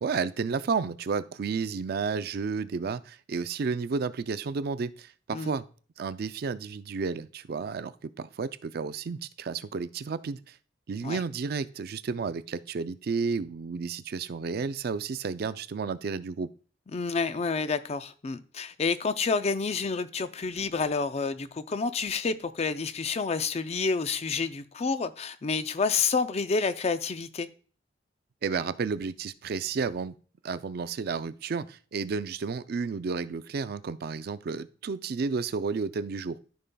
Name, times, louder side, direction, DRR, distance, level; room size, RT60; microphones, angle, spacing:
voice 1, 0.0-5.6 6.0-10.6 10.9-16.5 28.4-30.1 30.4-36.4, right 5 dB, 55° right, 0.4 m, -32 dB
voice 2, 16.9-27.5, left 4 dB, 35° left, 0.4 m, -29 dB
13.5 x 5.4 x 2.2 m
head